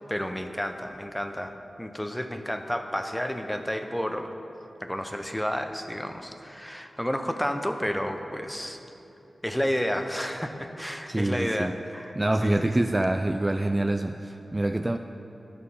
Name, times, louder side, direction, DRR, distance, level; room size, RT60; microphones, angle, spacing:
voice 1, 0.1-4.3 4.8-8.8 9.4-12.7, equal, 5° left, 6 dB, 0.8 m, -31 dB
voice 2, 11.1-11.7 12.2-15.0, right 1 dB, 25° right, 6 dB, 0.3 m, -26 dB
11.5 x 6.3 x 5.5 m, 2.9 s
cardioid pair, 50°, 0 cm